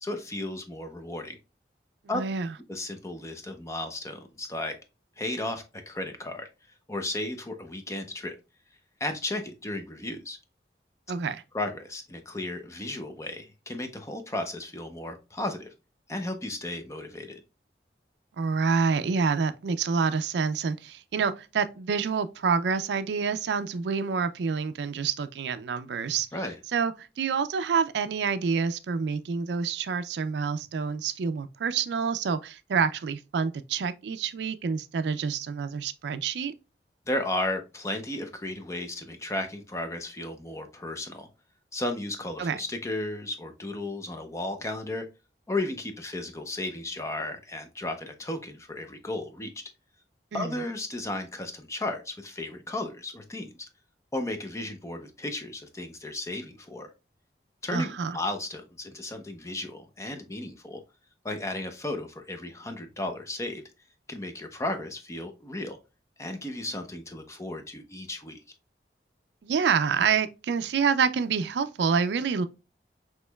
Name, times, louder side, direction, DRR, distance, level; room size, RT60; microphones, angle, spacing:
voice 1, 0.0-1.4 2.1-2.2 2.7-4.8 5.2-6.5 6.9-8.3 9.0-10.4 11.5-15.7 16.1-17.4 26.3-26.6 37.1-41.3 41.7-45.1 45.5-49.5 50.3-53.5 54.1-56.9 57.6-60.8 61.2-63.6 64.1-65.8 66.2-68.4, left 2 dB, 15° left, 0.5 m, -34 dB
voice 2, 2.1-2.5 11.1-11.4 18.4-26.3 26.7-36.5 42.4-42.6 50.3-50.6 57.7-58.2 69.4-72.5, right 5 dB, 80° right, 0.4 m, -27 dB
6.2 x 3.0 x 2.2 m
head